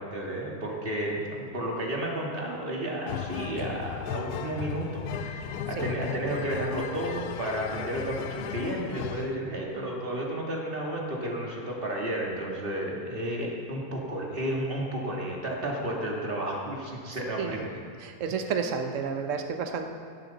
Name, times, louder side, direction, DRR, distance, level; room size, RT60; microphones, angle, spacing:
voice 1, 0.0-17.6, right 1 dB, 35° right, -2 dB, 2.1 m, -32 dB
sound 1, 3.1-9.4, left 8 dB, 85° left, 1.1 m, -35 dB
voice 2, 17.4-17.7 18.0-19.9, right 6 dB, 55° right, 5 dB, 1.2 m, -31 dB
16.5 x 11.0 x 4.1 m, 2.2 s
omnidirectional pair, 1.7 m